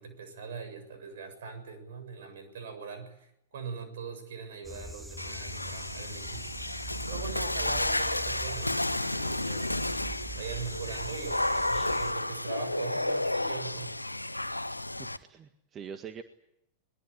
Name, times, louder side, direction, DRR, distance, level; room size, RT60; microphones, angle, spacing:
voice 1, 0.0-6.5 7.1-9.7 10.3-13.9, right 5 dB, 60° right, 8 dB, 7.4 m, -41 dB
sound 1, 4.6-12.1, right 2 dB, 5° right, 1.7 m, -43 dB
Water / Splash splatter, 5.2-15.2, left 1 dB, 85° left, 1.1 m, -32 dB
voice 2, 15.0-16.2, right 7 dB, 25° right, 8 dB, 1.7 m, -44 dB
22.5 x 21.5 x 9.8 m, 0.78 s
figure-of-eight pair, 90°, 0 cm